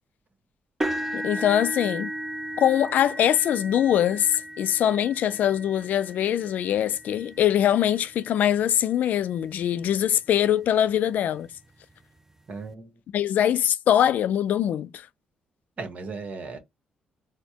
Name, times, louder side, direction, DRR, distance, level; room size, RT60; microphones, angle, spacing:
sound 1, 0.8-8.8 9.5-9.7 10.1-10.2 11.6-11.7, right 1 dB, 15° right, 0.5 m, -35 dB
voice 1, 1.1-2.1 2.6-11.5 13.1-15.1, left 10 dB, 75° left, 0.3 m, -23 dB
voice 2, 12.5-12.9 15.8-16.6, right 4 dB, 55° right, 1.2 m, -36 dB
4.2 x 2.1 x 2.8 m
cardioid pair, 80°, 3 cm